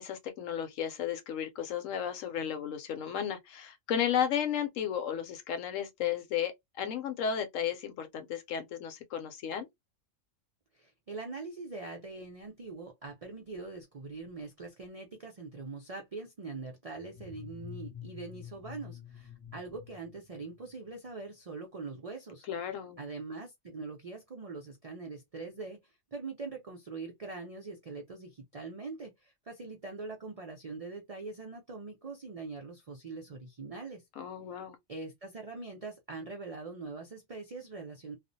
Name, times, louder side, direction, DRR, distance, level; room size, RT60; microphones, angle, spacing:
voice 1, 0.0-9.7 22.5-23.0 34.2-34.8, left 9 dB, 75° left, 1.0 m, -34 dB
voice 2, 10.7-22.5 23.0-34.0 34.9-38.2, right 3 dB, 70° right, 0.3 m, -43 dB
sound 1, 16.9-21.0, left 9 dB, 55° left, 0.7 m, -48 dB
2.4 x 2.0 x 2.5 m
omnidirectional pair, 1.4 m